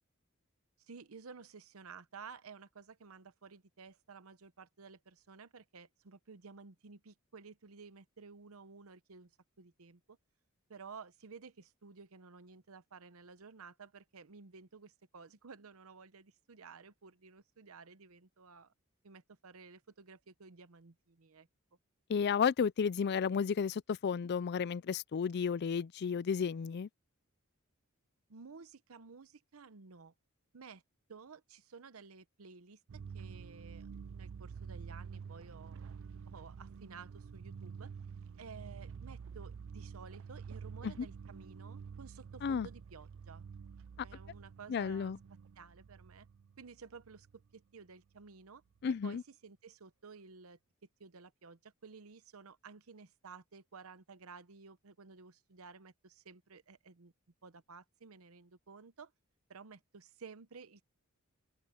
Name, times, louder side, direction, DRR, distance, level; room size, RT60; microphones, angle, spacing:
voice 1, 0.9-9.3 9.6-10.2 10.7-18.7 19.0-21.5 28.3-30.1 30.5-30.8 31.1-36.0 36.3-37.9 38.4-43.4 44.0-45.1 45.6-46.3 46.6-47.3 47.5-48.6 49.0-50.6 51.0-57.1 57.4-59.1 59.5-60.8, right 5 dB, 80° right, 0.8 m, -54 dB
voice 2, 22.1-26.9 40.8-40.9 42.4-42.7 44.7-45.2 48.8-49.2, left 6 dB, 50° left, 0.4 m, -32 dB
sound 1, 32.9-47.5 48.8-48.9, right 6 dB, 65° right, 0.4 m, -49 dB
open air
head